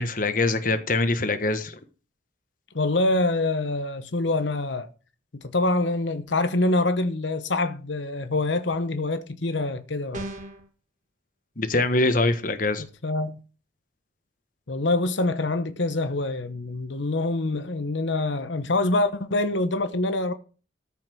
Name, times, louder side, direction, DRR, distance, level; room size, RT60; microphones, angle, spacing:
voice 1, 0.0-1.8 11.6-12.8, left 2 dB, 45° left, 1.3 m, -23 dB
voice 2, 2.7-4.9 5.3-10.3 12.8-13.4 14.7-20.3, left 2 dB, 75° left, 1.0 m, -25 dB
sound 1, 10.1-10.7, right 1 dB, 40° right, 2.5 m, -35 dB
14.0 x 5.8 x 6.1 m
head